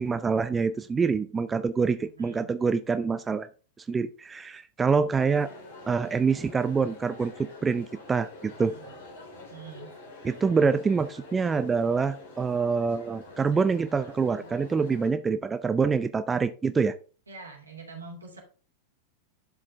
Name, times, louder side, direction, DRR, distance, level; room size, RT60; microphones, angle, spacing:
voice 1, 0.0-3.5 3.9-5.5 5.9-8.7 10.2-17.0, right 5 dB, 15° right, 11 dB, 0.5 m, -26 dB
voice 2, 2.0-2.5 8.6-9.0 9.5-9.9 17.3-18.4, right 4 dB, 80° right, 0 dB, 2.9 m, -45 dB
Crowd, 5.1-15.1, left 2 dB, 55° left, 3.3 m, -46 dB
11.5 x 4.9 x 3.5 m, 0.36 s
figure-of-eight pair, 90°, 0 cm